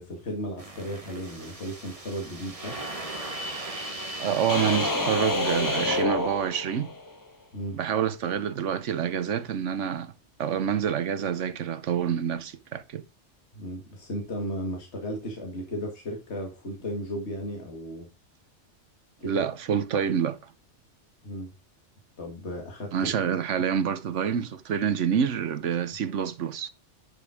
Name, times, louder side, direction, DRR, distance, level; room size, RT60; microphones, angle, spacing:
voice 1, 0.0-2.8 7.5-7.8 13.5-18.1 19.2-19.4 21.2-21.5 22.2-23.1, equal, 65° left, 2.3 m, -35 dB
sound 1, 0.6-6.0, right 1 dB, 30° right, 1.6 m, -38 dB
voice 2, 4.2-6.9 7.7-10.1 10.4-13.0 19.2-20.4 22.9-26.7, right 8 dB, 80° right, 1.2 m, -27 dB
sound 2, 4.5-7.1, left 2 dB, 15° left, 1.2 m, -27 dB
10.0 x 5.3 x 4.9 m
omnidirectional pair, 1.2 m